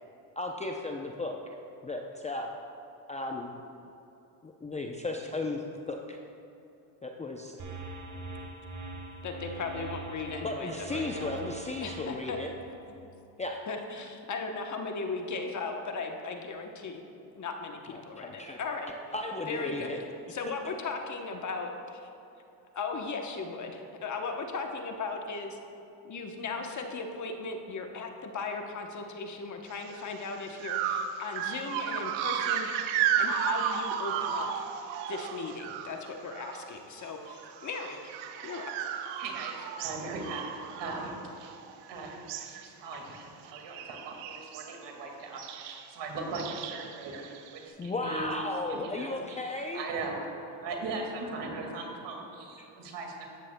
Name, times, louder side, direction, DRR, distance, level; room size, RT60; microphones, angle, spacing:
voice 1, 0.4-1.5 1.8-2.5 3.1-3.5 4.4-6.2 7.0-7.6 10.4-12.5 13.4-13.6 17.9-18.6 19.1-20.0 47.8-49.8 52.6-52.7, left 2 dB, 15° left, 2 dB, 0.5 m, -35 dB
sound 1, 7.6-12.7, right 3 dB, 40° right, 1.5 m, -42 dB
voice 2, 9.2-11.3 11.8-12.4 13.7-17.0 17.3-18.9 19.5-20.0 20.3-22.1 22.7-25.6 26.0-34.7 35.1-38.1 38.4-38.7, left 4 dB, 40° left, 4 dB, 0.9 m, -37 dB
sound 2, 30.0-30.1 30.6-36.7 37.0-41.8 42.1-42.6 42.9-43.2 43.5-44.7 45.4-45.9 46.3-47.6, right 8 dB, 85° right, 0.7 m, -34 dB
voice 3, 39.2-41.5 41.9-47.2 47.5-48.3 48.7-50.3 50.6-53.3, right 3 dB, 65° right, 1 dB, 2.0 m, -39 dB
13.5 x 9.1 x 2.2 m, 2.8 s
supercardioid pair, 95°, 46 cm